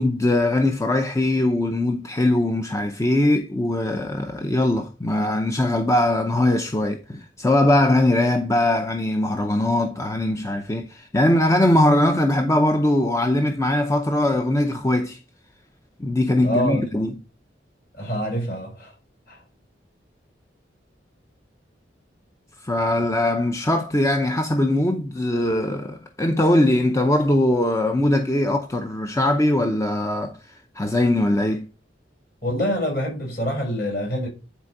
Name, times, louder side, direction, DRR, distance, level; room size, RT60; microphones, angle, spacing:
voice 1, 0.0-15.2 16.0-17.2 22.6-30.3 30.8-31.7, left 1 dB, 15° left, 0.6 m, -21 dB
voice 2, 16.4-16.8 17.9-18.9 19.3-19.4 32.4-34.3, equal, 50° left, 5.9 m, -25 dB
10.0 x 4.4 x 4.8 m
head